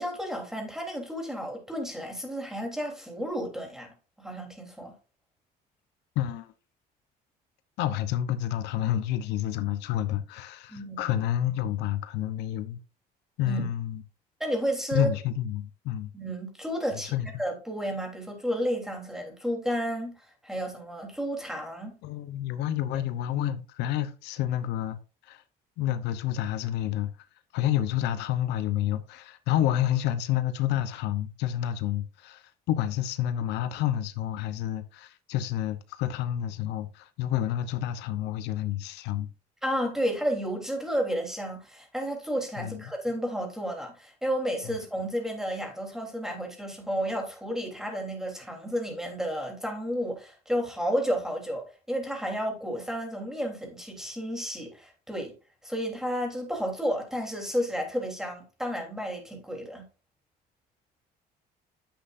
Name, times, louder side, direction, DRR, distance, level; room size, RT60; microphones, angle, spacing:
voice 1, 0.0-4.9 10.7-11.1 13.4-13.6 14.4-15.1 16.1-21.9 39.6-55.3 55.6-59.9, equal, 5° right, 3.4 m, -32 dB
voice 2, 6.2-6.5 7.8-12.8 13.4-14.0 14.9-16.1 17.1-17.3 22.0-25.4 25.8-27.1 27.5-39.3 42.6-42.8 44.7-44.8, left 11 dB, 90° left, 0.9 m, -29 dB
10.0 x 7.9 x 2.6 m
cardioid pair, 110°, 17 cm